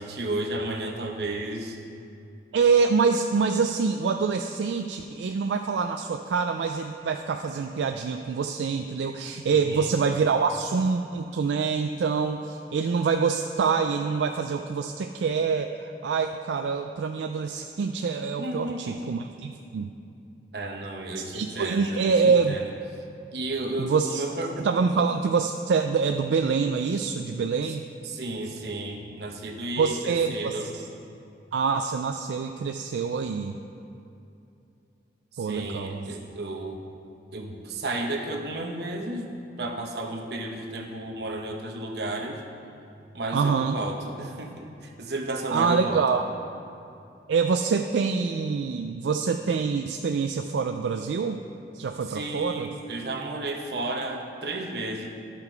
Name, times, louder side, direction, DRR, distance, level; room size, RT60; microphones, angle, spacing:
voice 1, 0.0-1.8 9.5-9.9 18.4-19.2 20.5-22.7 23.3-24.6 24.9-25.0 28.0-30.7 35.3-36.8 37.3-39.3 39.6-42.4 43.1-46.0 52.1-55.1, right 2 dB, 65° right, 2 dB, 0.9 m, -33 dB
voice 2, 2.5-19.9 21.2-22.6 23.8-24.2 24.6-27.8 29.8-30.9 31.5-33.6 35.4-36.1 43.3-43.8 45.5-46.3 47.3-51.4 51.7-52.7, right 5 dB, 85° right, 6 dB, 0.3 m, -25 dB
11.5 x 5.8 x 4.6 m, 2.7 s
head